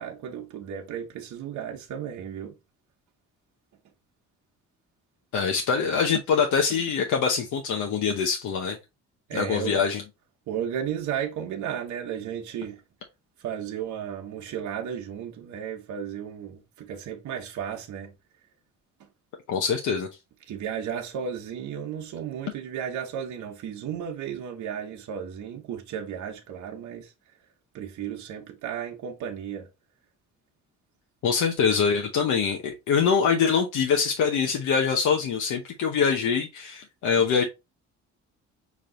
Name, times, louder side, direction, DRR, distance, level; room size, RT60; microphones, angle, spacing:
voice 1, 0.0-2.5 9.3-9.9 10.5-12.8 13.4-18.1 20.5-27.1 27.7-29.7, right 8 dB, 75° right, 0.9 m, -34 dB
voice 2, 5.3-8.8 9.3-10.0 19.5-20.1 31.2-37.4, left 6 dB, 80° left, 0.9 m, -24 dB
5.2 x 2.7 x 3.8 m
cardioid pair, 90°, 30 cm